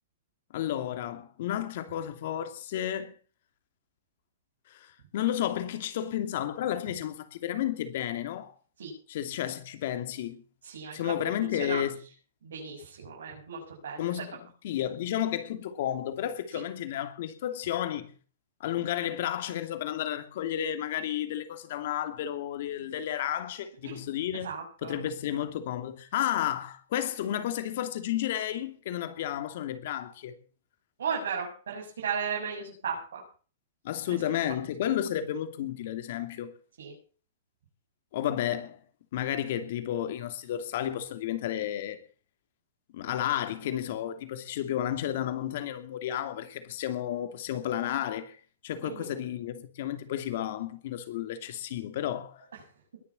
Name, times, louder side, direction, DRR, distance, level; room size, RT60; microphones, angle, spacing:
voice 1, 0.5-3.1 4.7-8.5 9.1-10.4 10.9-12.0 14.0-14.4 14.6-18.1 18.6-24.5 24.8-30.4 33.8-36.5 38.1-38.8 39.1-42.0 42.9-48.4 48.6-52.4, left 11 dB, 60° left, 2.7 m, -32 dB
voice 2, 10.6-11.8 12.4-14.2 23.8-24.0 24.4-24.9 31.0-33.2 34.1-34.2 36.8-36.9 48.8-49.2, right 6 dB, 85° right, 6.9 m, -36 dB
21.0 x 7.1 x 7.1 m
hypercardioid pair, 145°, 0 cm